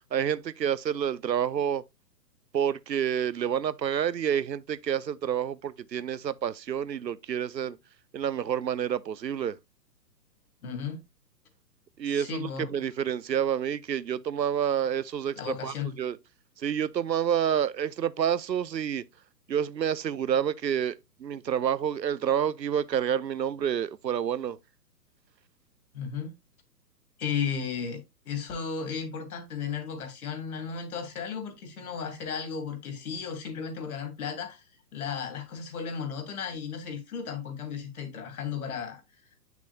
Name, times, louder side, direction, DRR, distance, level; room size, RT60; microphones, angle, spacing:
voice 1, 0.0-1.8 2.5-7.8 8.1-9.6 12.0-15.4 15.6-16.2 16.6-19.0 19.5-20.9 21.2-24.6, right 9 dB, 85° right, 0.7 m, -28 dB
voice 2, 10.6-11.0 12.0-12.7 15.4-15.9 25.9-26.3 27.2-28.0 28.2-34.6 34.9-39.0, left 6 dB, 60° left, 2.7 m, -34 dB
8.7 x 6.1 x 2.7 m
figure-of-eight pair, 125°, 49 cm